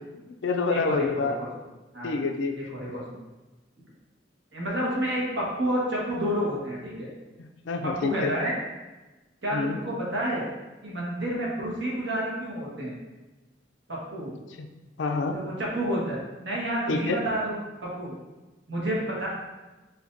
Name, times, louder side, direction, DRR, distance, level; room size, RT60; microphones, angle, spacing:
voice 1, 0.1-1.4 2.0-2.6 2.9-3.0 7.4-8.3 9.5-9.8 14.6-14.7 15.0-15.4 16.9-17.2, left 4 dB, 75° left, 5 dB, 0.4 m, -27 dB
voice 2, 0.7-1.5 1.9-2.2 2.5-3.2 4.5-7.1 8.0-8.5 9.4-10.5 10.8-12.9 13.9-14.3 15.3-16.2 16.4-17.6 18.0-18.1 18.7-19.3, right 1 dB, 70° right, -5 dB, 1.4 m, -29 dB
5.8 x 2.7 x 2.6 m, 1.1 s
head